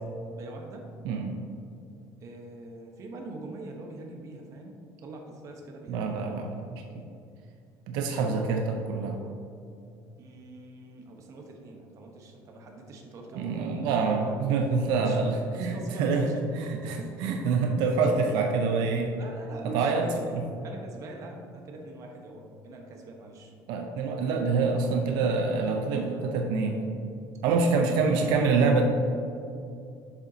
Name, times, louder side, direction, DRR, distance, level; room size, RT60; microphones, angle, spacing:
voice 1, 0.3-0.9 2.2-4.7 5.0-6.3 10.2-14.4 15.0-16.4 17.0-17.5 19.2-23.5 27.4-28.4, right 2 dB, 45° right, 1 dB, 1.0 m, -43 dB
voice 2, 1.0-1.4 5.9-7.0 7.9-9.2 13.3-19.1 19.6-20.1 20.3-20.4 23.7-26.8 27.4-28.8, right 4 dB, 85° right, 3 dB, 0.6 m, -26 dB
Wind instrument woodwind instrument, 13.3-19.0, right 4 dB, 10° right, 0.7 m, -50 dB
6.9 x 6.8 x 2.8 m, 2.5 s
cardioid pair, 140°, 7 cm